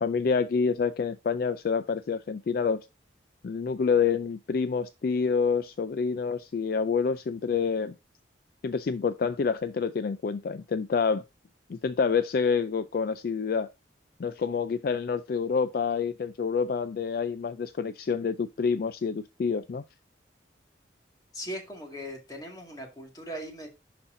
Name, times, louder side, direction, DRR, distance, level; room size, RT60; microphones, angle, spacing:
voice 1, 0.0-2.8 3.4-7.9 8.6-11.2 11.7-13.7 14.2-19.8, left 5 dB, 50° left, 0.3 m, -27 dB
voice 2, 21.3-23.7, equal, 20° left, 1.9 m, -39 dB
11.0 x 4.2 x 2.6 m
head